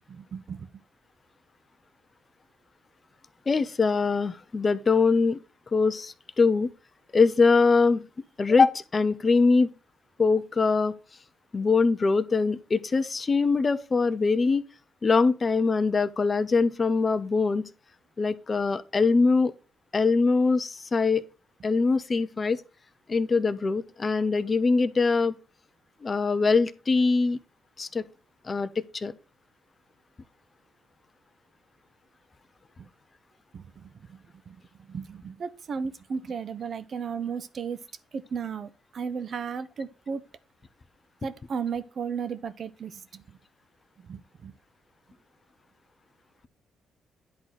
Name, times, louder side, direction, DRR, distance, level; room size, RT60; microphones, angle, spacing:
voice 1, 0.1-0.7 33.5-34.2 34.5-37.8 38.1-40.2 41.2-43.4 44.0-44.5, right 6 dB, 55° right, 0.9 m, -35 dB
voice 2, 3.5-5.4 5.7-6.7 7.1-8.0 8.4-9.7 10.2-10.9 11.5-14.6 15.0-17.6 18.2-19.5 19.9-21.2 21.6-22.6 23.1-25.3 26.0-27.4 27.8-28.0 28.5-28.7 28.9-29.1, left 4 dB, 35° left, 0.9 m, -23 dB
10.5 x 4.0 x 6.5 m
cardioid pair, 90°, 0 cm